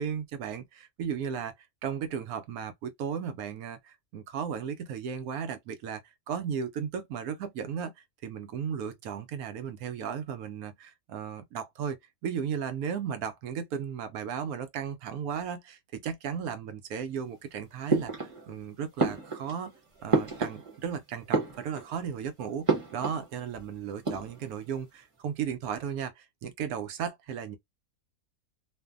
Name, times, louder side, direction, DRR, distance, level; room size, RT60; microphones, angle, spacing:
voice 1, 0.0-1.5 1.8-19.7 20.0-27.6, right 7 dB, 90° right, 1.1 m, -35 dB
sound 1, 17.9-18.6 19.0-20.9 21.2-22.1 22.7-23.3 23.5-23.6 23.9-24.6, right 3 dB, 25° right, 0.9 m, -30 dB
2.5 x 2.5 x 2.3 m
omnidirectional pair, 1.5 m